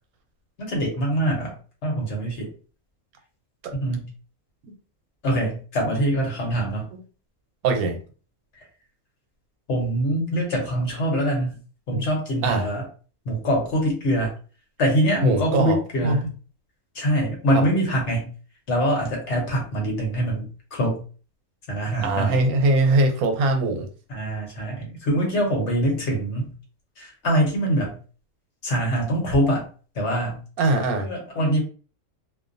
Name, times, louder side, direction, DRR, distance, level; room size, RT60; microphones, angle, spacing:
voice 1, 0.6-1.6 1.8-2.5 3.7-4.1 5.2-6.9 9.7-11.6 11.9-12.8 13.2-14.3 14.8-16.3 16.9-18.3 18.7-21.0 21.7-22.4 24.1-26.5 27.0-28.0 28.6-29.7 29.9-30.4 31.0-31.6, right 1 dB, 55° left, 0 dB, 1.1 m, -24 dB
voice 2, 7.6-8.0 11.9-12.1 12.4-12.7 15.2-15.8 16.0-16.2 17.5-17.6 22.0-23.9 30.6-31.1, right 2 dB, 90° right, 4 dB, 1.1 m, -21 dB
2.6 x 2.2 x 2.5 m, 0.38 s
omnidirectional pair, 1.5 m